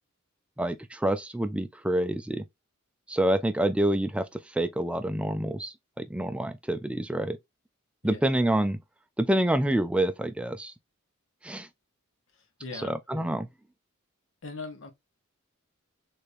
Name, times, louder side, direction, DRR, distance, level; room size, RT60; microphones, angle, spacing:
voice 1, 0.6-2.4 3.1-4.3 4.5-7.4 8.0-8.8 9.2-10.7 11.4-11.7 12.8-13.5, right 1 dB, 5° right, 0.4 m, -27 dB
voice 2, 12.3-12.9 14.4-14.9, left 3 dB, 65° left, 1.0 m, -40 dB
3.5 x 3.2 x 2.5 m
head